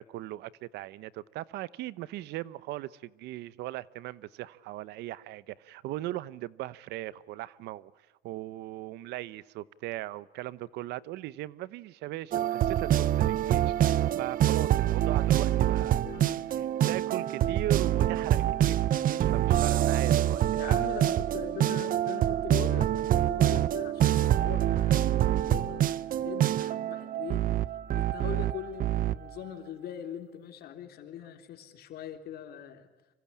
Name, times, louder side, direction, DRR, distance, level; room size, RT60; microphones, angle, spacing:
voice 1, 0.0-7.9 8.2-13.7 14.1-16.0 16.5-20.9, right 16 dB, 85° right, 19 dB, 0.9 m, -38 dB
sound 1, 12.3-29.1, right 12 dB, 55° right, 0.8 m, -26 dB
voice 2, 16.0-16.4 20.5-22.9 23.3-26.0 26.2-27.5 28.0-32.9, left 9 dB, 70° left, 6 dB, 3.6 m, -41 dB
26.5 x 24.5 x 8.6 m, 1.1 s
cardioid pair, 110°, 17 cm